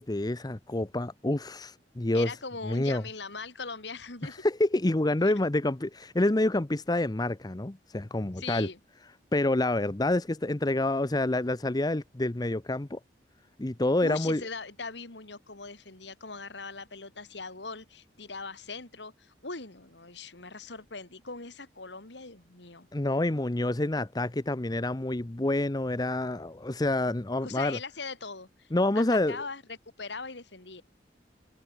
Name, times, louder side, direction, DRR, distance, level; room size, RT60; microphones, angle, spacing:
voice 1, 0.0-2.3 2.6-3.0 4.2-8.7 9.3-13.0 13.6-14.4 22.9-27.8 28.7-29.4, left 2 dB, 20° left, 0.8 m, -28 dB
voice 2, 2.1-4.4 8.4-8.8 14.0-22.9 27.4-28.7 28.9-30.8, left 4 dB, 75° left, 3.1 m, -40 dB
head